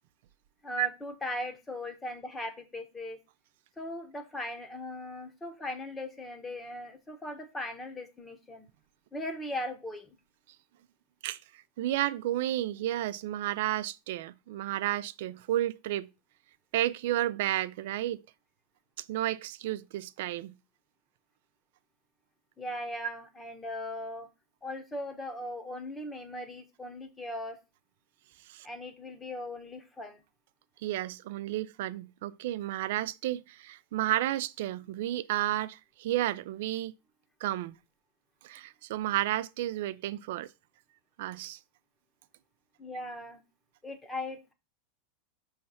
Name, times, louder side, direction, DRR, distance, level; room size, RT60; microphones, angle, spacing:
voice 1, 0.6-3.2 3.8-8.7 9.1-10.2 22.6-24.3 24.6-27.6 28.6-30.2 42.8-43.4 43.8-44.5, left 1 dB, 10° left, 1.1 m, -39 dB
voice 2, 11.8-16.1 16.7-18.2 19.0-20.5 28.5-28.7 30.8-36.9 37.4-37.8 38.4-40.5 41.2-41.6, right 14 dB, 70° right, 0.4 m, -32 dB
5.6 x 3.2 x 5.5 m
supercardioid pair, 135°, 0 cm